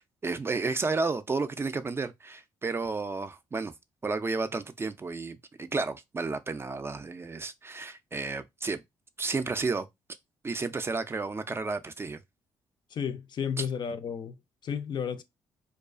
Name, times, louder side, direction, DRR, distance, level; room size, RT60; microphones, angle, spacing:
voice 1, 0.0-3.7 4.0-8.8 9.2-9.9 10.4-12.2 13.6-13.7, right 3 dB, 25° right, 0.3 m, -32 dB
voice 2, 12.9-15.2, left 7 dB, 50° left, 0.4 m, -33 dB
2.3 x 2.2 x 2.4 m
supercardioid pair, 65°, 10 cm